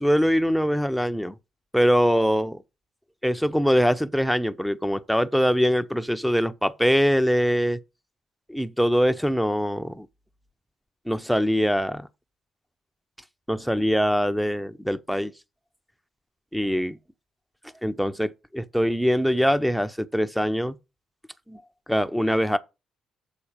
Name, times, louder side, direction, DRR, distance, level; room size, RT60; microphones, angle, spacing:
voice 1, 0.0-1.3 1.7-2.6 3.2-7.8 8.5-10.1 11.1-12.1 13.5-15.3 16.5-17.0 17.8-20.7 21.5-21.6 21.9-22.6, equal, ahead, 0.7 m, -23 dB
7.2 x 4.3 x 6.7 m
hypercardioid pair, 45°, 0 cm